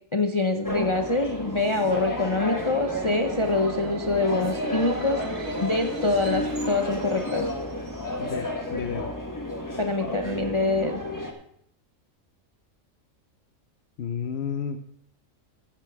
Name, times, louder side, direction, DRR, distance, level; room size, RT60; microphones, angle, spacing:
voice 1, 0.1-5.2 5.6-7.5 9.8-11.0, left 2 dB, 30° left, 4 dB, 0.6 m, -25 dB
sound 1, 0.6-11.3, left 1 dB, 15° left, 1.3 m, -32 dB
Subway metro underground, 0.8-8.5, right 4 dB, 75° right, 1.5 m, -40 dB
voice 2, 8.2-9.1 14.0-14.8, left 7 dB, 60° left, 7 dB, 0.9 m, -31 dB
14.5 x 9.2 x 3.5 m, 0.68 s
omnidirectional pair, 1.4 m